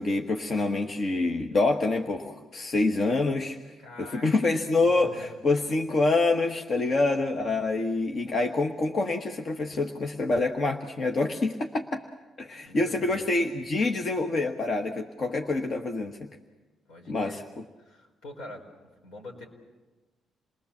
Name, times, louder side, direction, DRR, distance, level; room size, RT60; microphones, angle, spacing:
voice 1, 0.0-12.0 12.4-16.3 17.1-17.4, left 3 dB, 50° left, 4 dB, 1.3 m, -26 dB
voice 2, 3.8-4.3 4.9-5.4 12.6-13.4 16.9-17.4 17.8-18.7 19.0-19.4, left 2 dB, 80° left, 1 dB, 5.2 m, -44 dB
28.0 x 20.0 x 7.3 m, 1.2 s
cardioid pair, 90°, 0 cm